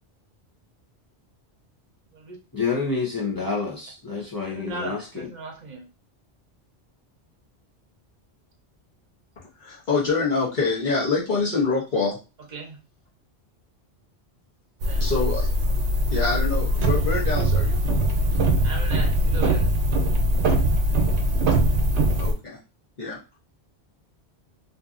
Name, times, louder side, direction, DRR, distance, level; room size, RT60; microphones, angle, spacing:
voice 1, 2.5-5.3, left 4 dB, 25° left, -4 dB, 0.5 m, -28 dB
voice 2, 4.2-5.8 12.5-12.8 14.8-15.0 18.6-19.7, right 3 dB, 45° right, 0 dB, 0.7 m, -37 dB
voice 3, 9.6-12.2 15.0-15.7 16.1-17.8 22.2-22.6 23.0-23.4, left 4 dB, 45° left, -6 dB, 0.9 m, -25 dB
sound 1, 14.8-22.3, right 1 dB, 85° right, 0.9 m, -21 dB
2.6 x 2.6 x 2.4 m, 0.31 s
omnidirectional pair, 1.1 m